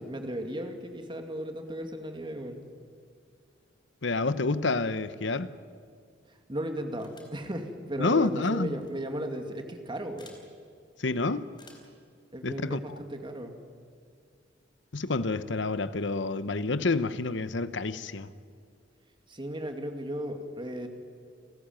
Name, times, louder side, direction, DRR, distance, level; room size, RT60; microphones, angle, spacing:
voice 1, 0.0-2.6 6.3-10.4 12.3-13.5 19.3-20.9, right 1 dB, 25° right, 5 dB, 2.3 m, -36 dB
voice 2, 4.0-5.5 8.0-8.8 11.0-11.5 12.4-12.8 14.9-18.3, left 3 dB, 75° left, 14 dB, 1.0 m, -28 dB
sound 1, 7.0-7.4 8.7-8.9 10.2-10.4 11.5-12.0, left 3 dB, 25° left, 4.2 m, -54 dB
30.0 x 14.0 x 9.2 m, 2.2 s
head